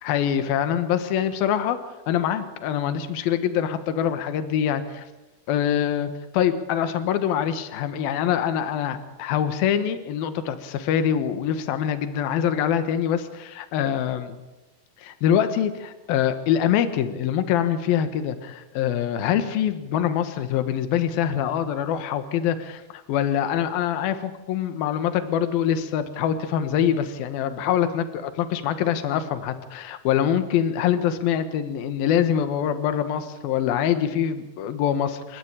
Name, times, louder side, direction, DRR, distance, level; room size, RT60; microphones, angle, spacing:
voice 1, 0.0-1.8 2.1-5.0 5.5-6.1 6.3-14.3 15.0-35.4, left 9 dB, 75° left, 9 dB, 3.1 m, -24 dB
29.0 x 13.0 x 8.9 m, 1.1 s
omnidirectional pair, 4.3 m